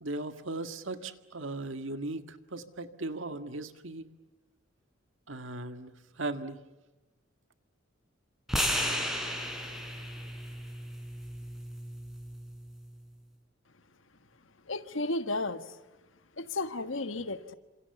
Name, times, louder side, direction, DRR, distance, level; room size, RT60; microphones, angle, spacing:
voice 1, 0.0-4.1 5.3-6.6, right 2 dB, 70° right, 8 dB, 1.9 m, -38 dB
sound 1, 8.5-12.7, equal, ahead, 4.4 m, -34 dB
voice 2, 14.7-15.7 16.4-17.5, left 2 dB, 70° left, 10 dB, 1.5 m, -33 dB
29.0 x 26.5 x 7.1 m, 1.1 s
head